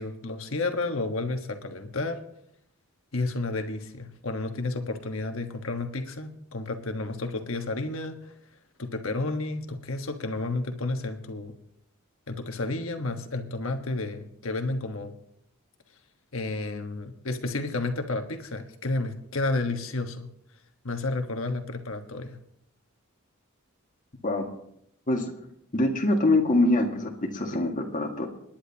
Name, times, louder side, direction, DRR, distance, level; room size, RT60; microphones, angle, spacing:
voice 1, 0.0-2.2 3.1-8.3 8.8-11.5 12.3-15.1 16.3-20.3 20.8-22.4, left 2 dB, 65° left, 6 dB, 1.4 m, -31 dB
voice 2, 25.7-28.3, left 2 dB, 40° left, 2 dB, 1.9 m, -24 dB
28.0 x 10.0 x 2.9 m, 0.75 s
head